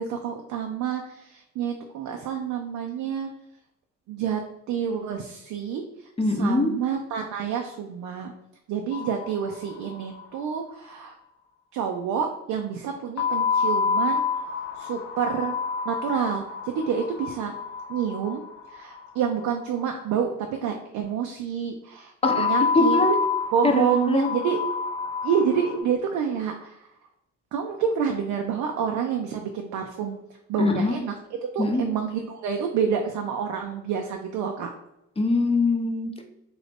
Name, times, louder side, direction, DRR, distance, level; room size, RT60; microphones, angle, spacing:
voice 1, 0.0-3.3 4.1-4.4 4.7-6.1 6.3-8.3 8.7-11.2 11.7-14.2 14.8-15.5 15.9-17.5 17.9-18.4 18.7-23.0 23.5-24.6 25.2-26.9 27.5-30.2 30.5-31.1 31.5-34.7, right 7 dB, 80° right, 3 dB, 0.5 m, -28 dB
voice 2, 6.2-6.7 22.2-22.5 22.7-23.2 23.6-24.3 30.6-31.0 31.6-31.8 35.2-36.2, left 2 dB, 20° left, 3 dB, 0.6 m, -22 dB
sound 1, 8.9-9.9 10.2-10.3 10.5-10.6 13.2-19.3 22.2-25.8, left 5 dB, 90° left, 0.6 m, -27 dB
3.0 x 2.5 x 3.3 m, 0.84 s
cardioid pair, 90°, 30 cm